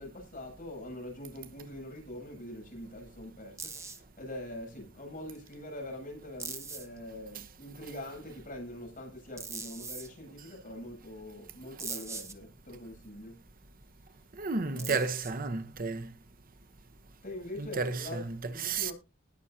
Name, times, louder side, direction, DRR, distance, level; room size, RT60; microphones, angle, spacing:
voice 1, 0.0-13.4 14.7-15.1 17.2-18.9, left 1 dB, 45° left, 7.9 m, -43 dB
sound 1, 3.6-4.0 5.4-5.5 6.4-7.0 9.4-10.1 11.8-12.3 14.8-15.5, right 4 dB, 15° right, 1.5 m, -40 dB
voice 2, 14.4-16.1 17.6-18.2 18.6-18.9, right 4 dB, 45° right, 1.0 m, -32 dB
19.5 x 7.1 x 2.8 m
head